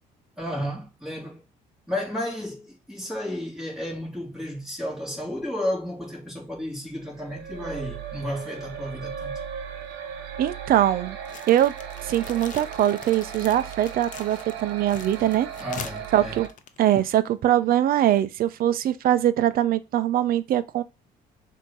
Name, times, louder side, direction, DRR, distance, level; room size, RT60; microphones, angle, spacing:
voice 1, 0.4-1.4 1.9-9.4 15.6-16.4, left 1 dB, ahead, 2.6 m, -32 dB
sound 1, 7.0-16.5, right 8 dB, 90° right, 1.1 m, -37 dB
voice 2, 10.4-11.2 11.5-11.7 12.0-15.5 16.1-16.5 16.8-20.8, right 12 dB, 60° right, 0.6 m, -22 dB
sound 2, 11.2-17.4, left 8 dB, 50° left, 0.7 m, -43 dB
6.2 x 2.9 x 5.4 m
cardioid pair, 110°, 17 cm